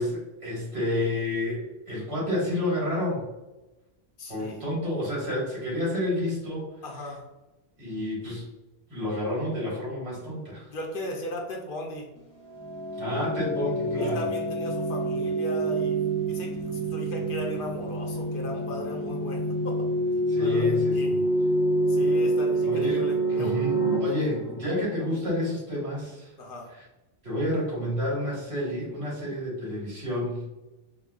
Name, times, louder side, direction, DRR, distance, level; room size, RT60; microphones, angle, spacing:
voice 1, 0.0-3.2 4.3-6.7 7.8-8.4 8.9-10.7 13.0-14.2 20.3-21.2 22.6-23.0 23.3-26.3 26.7-26.8 27.2-30.4, left 1 dB, 80° right, -6 dB, 1.9 m, -30 dB
voice 2, 4.2-4.7 6.8-7.3 10.7-12.1 14.0-19.9 20.4-21.2 21.8-23.6 24.1-24.3 26.4-26.7, left 1 dB, 60° left, 2 dB, 0.8 m, -37 dB
sound 1, 12.5-25.2, right 1 dB, 25° left, 0.4 m, -27 dB
4.8 x 2.1 x 2.3 m, 1.0 s
omnidirectional pair, 1.1 m